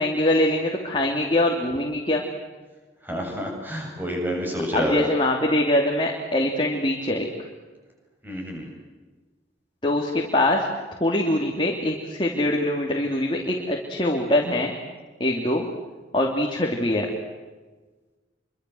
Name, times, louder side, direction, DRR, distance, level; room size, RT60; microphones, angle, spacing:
voice 1, 0.0-2.2 4.7-7.3 9.8-10.6 11.0-14.7 15.2-15.7 16.1-17.1, left 1 dB, 25° left, 0 dB, 3.1 m, -23 dB
voice 2, 3.0-5.1 8.2-8.7, equal, 10° right, 0 dB, 7.8 m, -28 dB
28.0 x 25.0 x 8.0 m, 1.3 s
head